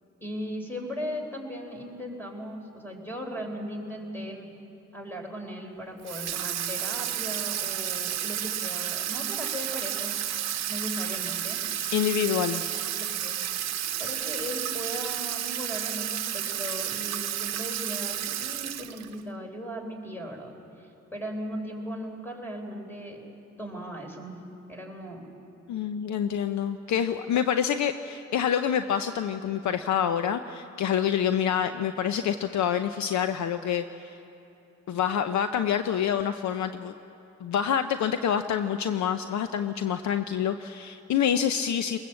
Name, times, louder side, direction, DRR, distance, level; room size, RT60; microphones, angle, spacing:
voice 1, 0.2-4.5 4.9-10.3 10.7-11.6 12.9-13.4 14.0-23.2 23.6-24.4 24.7-25.2 27.3-27.4, equal, 5° left, 2 dB, 4.2 m, -37 dB
Water tap faucet / Sink (filling or washing), 6.1-19.2, right 11 dB, 60° right, 0.9 m, -31 dB
voice 2, 11.9-12.6 25.7-34.2 34.9-36.9 37.4-42.0, left 9 dB, 70° left, 9 dB, 0.8 m, -27 dB
20.5 x 20.0 x 7.7 m, 2.8 s
cardioid pair, 90°, 30 cm